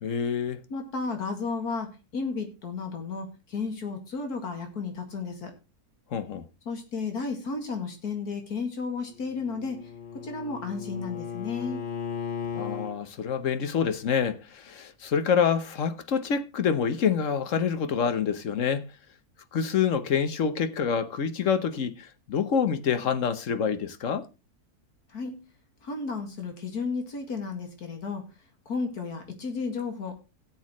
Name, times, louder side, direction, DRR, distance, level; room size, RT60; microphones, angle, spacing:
voice 1, 0.0-0.6 6.1-6.5 12.5-18.9 19.5-24.3, left 7 dB, 60° left, 1.2 m, -27 dB
voice 2, 0.7-5.5 6.7-11.9 25.1-25.4 25.8-28.3 28.7-30.1, left 4 dB, 80° left, 2.5 m, -33 dB
Bowed string instrument, 9.1-12.9, left 6 dB, 40° left, 0.7 m, -36 dB
18.0 x 7.4 x 3.1 m
omnidirectional pair, 1.6 m